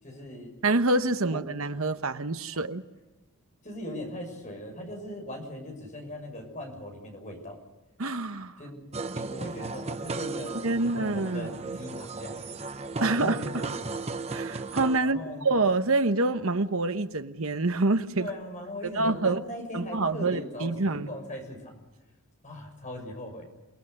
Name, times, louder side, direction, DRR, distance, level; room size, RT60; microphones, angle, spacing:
voice 1, 0.0-0.5 1.3-1.4 2.5-2.6 3.6-7.6 8.6-8.8 9.1-12.4 12.9-13.9 15.0-15.4 18.2-21.8 22.4-23.5, left 1 dB, 35° left, 6.7 m, -39 dB
voice 2, 0.6-2.8 8.0-8.5 10.6-11.6 13.0-13.6 14.3-15.2 15.4-18.3 18.8-19.4 19.7-21.1, right 2 dB, 70° right, 1.1 m, -26 dB
sound 1, 8.9-15.0, right 3 dB, 30° right, 0.7 m, -35 dB
29.0 x 19.5 x 6.7 m
head